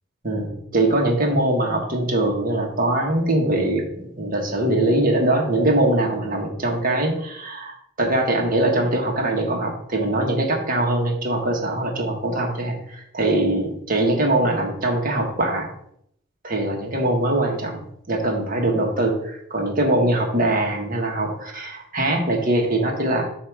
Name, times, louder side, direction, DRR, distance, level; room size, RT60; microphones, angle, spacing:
voice 1, 0.2-15.7 16.4-17.8 18.1-23.2, right 1 dB, 40° right, 1 dB, 1.5 m, -22 dB
8.4 x 2.9 x 6.0 m, 0.71 s
head